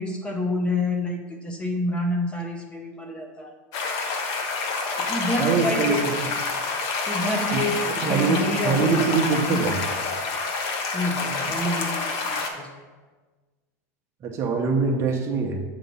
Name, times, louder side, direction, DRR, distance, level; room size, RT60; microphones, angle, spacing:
voice 1, 0.0-3.5 5.0-6.0 7.1-9.1 9.5-9.6 10.9-12.7, left 1 dB, 15° left, 3 dB, 0.6 m, -28 dB
sound 1, 3.7-12.5, left 4 dB, 50° left, 0.9 m, -28 dB
voice 2, 5.4-6.3 7.5-7.6 8.0-9.8 14.2-15.6, right 5 dB, 35° right, 3 dB, 0.8 m, -23 dB
7.9 x 3.0 x 5.3 m, 1.3 s
supercardioid pair, 145°, 8 cm